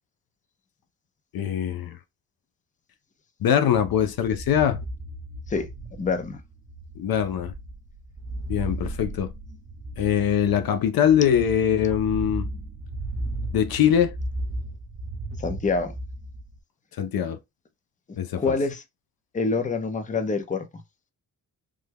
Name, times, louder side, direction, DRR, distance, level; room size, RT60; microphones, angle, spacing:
voice 1, 1.3-2.0 3.4-4.8 7.0-7.5 8.5-9.3 10.0-12.5 13.5-14.1 17.0-17.4 18.2-18.5, left 9 dB, 70° left, 0.5 m, -22 dB
sound 1, 3.7-16.6, right 1 dB, 35° right, 0.9 m, -35 dB
voice 2, 6.0-6.4 15.4-15.9 18.4-18.8 19.3-20.7, left 4 dB, 20° left, 0.6 m, -26 dB
3.3 x 2.2 x 3.3 m
cardioid pair, 105°, 37 cm